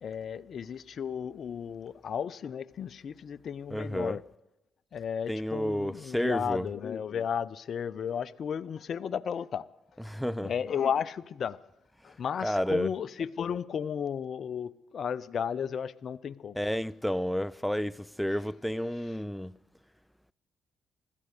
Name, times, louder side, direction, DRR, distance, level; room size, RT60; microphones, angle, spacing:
voice 1, 0.0-4.2 4.9-9.7 10.4-11.6 12.0-16.6, left 7 dB, 60° left, 0.5 m, -34 dB
voice 2, 3.7-4.2 5.3-6.7 10.1-10.5 12.4-12.9 16.6-19.6, equal, 5° left, 0.5 m, -31 dB
16.0 x 13.0 x 6.6 m
hypercardioid pair, 50°, 0 cm